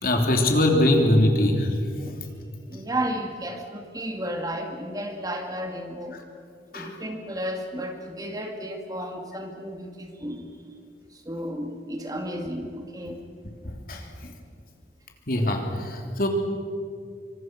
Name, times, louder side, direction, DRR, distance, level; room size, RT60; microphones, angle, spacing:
voice 1, 0.0-1.7 2.1-2.2 6.7-6.9 13.6-14.0 15.3-16.3, left 1 dB, 50° left, 2 dB, 3.3 m, -22 dB
voice 2, 2.0-2.3 2.7-6.2 6.7-10.4 11.3-13.3, equal, 20° right, 4 dB, 2.2 m, -33 dB
26.5 x 25.0 x 6.3 m, 2.3 s
head